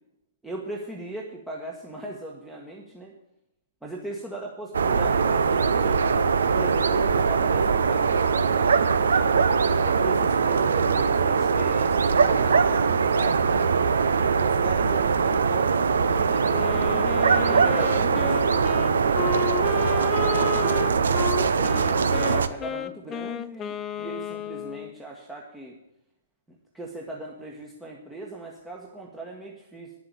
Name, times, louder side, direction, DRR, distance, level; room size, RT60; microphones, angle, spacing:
voice 1, 0.4-3.1 3.8-6.0 6.5-9.3 9.8-13.5 14.4-17.0 17.5-20.8 21.3-25.8 26.5-29.9, right 2 dB, 5° right, -1 dB, 1.4 m, -39 dB
sound 1, 4.7-22.5, right 5 dB, 60° right, 0.8 m, -22 dB
Wind instrument woodwind instrument, 16.5-24.9, left 8 dB, 20° left, 0.5 m, -33 dB
10.5 x 7.5 x 9.6 m, 0.88 s
figure-of-eight pair, 115°, 0 cm